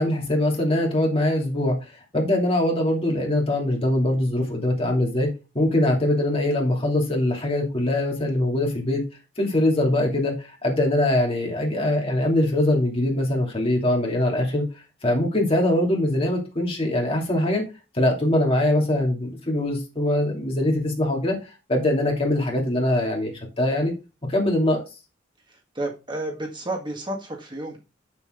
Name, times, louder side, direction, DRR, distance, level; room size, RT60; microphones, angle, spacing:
voice 1, 0.0-9.0 9.4-14.7 15.0-17.6 17.9-21.4 21.7-23.9 24.3-24.8, left 1 dB, 30° left, 2.9 m, -22 dB
voice 2, 25.8-27.8, right 1 dB, 25° right, 1.8 m, -31 dB
8.0 x 7.2 x 3.8 m
head